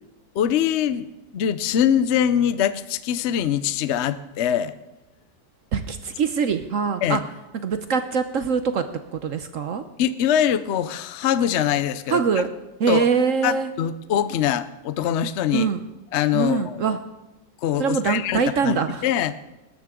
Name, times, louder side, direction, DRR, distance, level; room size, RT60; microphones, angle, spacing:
voice 1, 0.3-1.1 1.3-4.8 7.0-7.2 10.0-12.2 12.9-13.1 13.4-15.7 16.1-17.0 17.6-19.3, left 9 dB, 65° left, 13 dB, 0.7 m, -23 dB
voice 2, 5.7-7.2 7.6-8.9 9.1-9.8 12.1-12.5 12.8-13.7 15.5-15.8 16.3-17.0 17.8-19.1, right 6 dB, 60° right, 9 dB, 0.9 m, -23 dB
20.0 x 12.5 x 3.7 m, 1.0 s
omnidirectional pair, 1.9 m